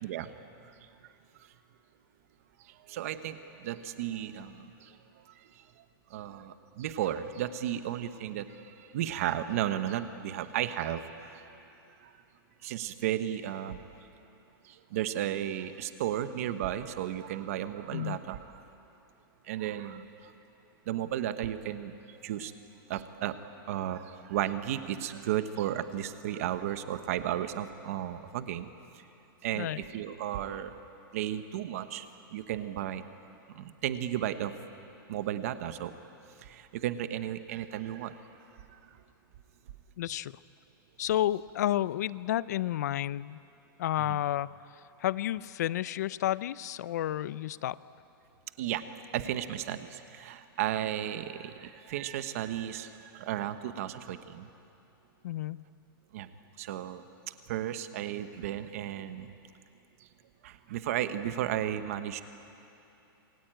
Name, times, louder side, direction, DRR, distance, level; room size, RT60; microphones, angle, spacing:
voice 1, 0.0-0.3 0.6-0.7 2.6-4.9 5.4-5.5 6.1-11.5 12.0-12.1 12.6-13.8 14.6-18.4 19.4-20.3 20.9-22.5 22.9-23.4 23.6-28.7 29.4-30.7 31.1-32.1 32.3-33.0 33.5-34.5 35.1-35.9 36.4-38.2 38.7-38.8 44.0-44.1 48.6-48.8 49.1-54.5 56.1-56.3 56.6-59.3 60.4-62.2, right 11 dB, 40° right, 10 dB, 1.1 m, -34 dB
voice 2, 40.0-40.4 41.0-43.4 43.8-44.5 45.0-47.8 55.2-55.6, left 13 dB, 45° left, 18 dB, 0.5 m, -31 dB
27.0 x 22.5 x 9.0 m, 2.8 s
supercardioid pair, 180°, 12 cm